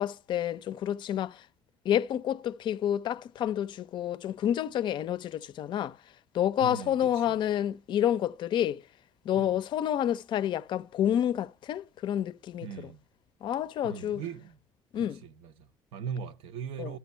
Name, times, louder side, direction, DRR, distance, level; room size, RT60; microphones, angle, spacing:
voice 1, 0.0-1.4 1.9-6.0 6.3-8.8 9.3-12.7 13.4-14.2 14.9-15.2 16.8-16.9, left 10 dB, 55° left, 0.4 m, -29 dB
voice 2, 6.6-7.4 9.4-9.6 12.6-13.0 13.8-14.6 14.9-17.0, right 7 dB, 80° right, 0.7 m, -40 dB
12.5 x 6.0 x 5.5 m
cardioid pair, 105°, 9 cm